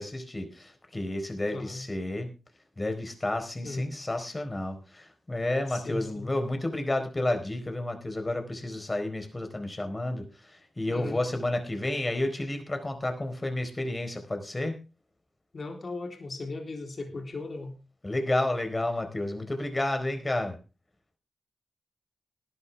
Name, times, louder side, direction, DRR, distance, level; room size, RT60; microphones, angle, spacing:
voice 1, 0.0-2.3 2.8-14.8 18.0-20.6, left 1 dB, 30° left, 6 dB, 4.2 m, -31 dB
voice 2, 1.5-1.9 3.6-3.9 5.7-6.3 10.9-11.2 15.5-17.8, left 2 dB, 55° left, 4 dB, 3.6 m, -37 dB
17.5 x 12.0 x 3.5 m, 0.32 s
supercardioid pair, 40°, 0 cm